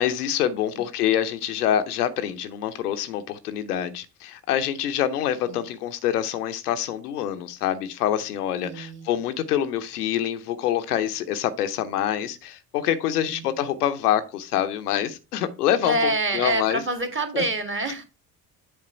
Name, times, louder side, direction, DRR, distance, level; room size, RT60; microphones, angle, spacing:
voice 1, 0.0-16.8 17.3-17.4, left 10 dB, 85° left, 0.7 m, -26 dB
voice 2, 8.6-9.1 13.2-13.5 15.8-18.0, right 2 dB, 25° right, 2.0 m, -27 dB
7.7 x 3.6 x 5.6 m
hypercardioid pair, 50°, 45 cm